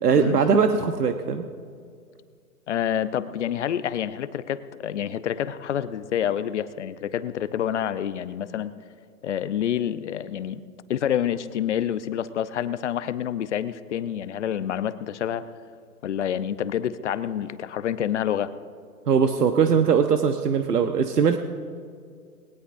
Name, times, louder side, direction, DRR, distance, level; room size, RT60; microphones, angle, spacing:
voice 1, 0.0-1.5 19.1-21.4, right 6 dB, 80° right, 6 dB, 1.2 m, -20 dB
voice 2, 2.7-8.7 9.2-10.6 10.9-15.4 16.0-18.5, left 10 dB, 50° left, 13 dB, 0.8 m, -28 dB
20.5 x 18.5 x 2.6 m, 2.2 s
hypercardioid pair, 145°, 46 cm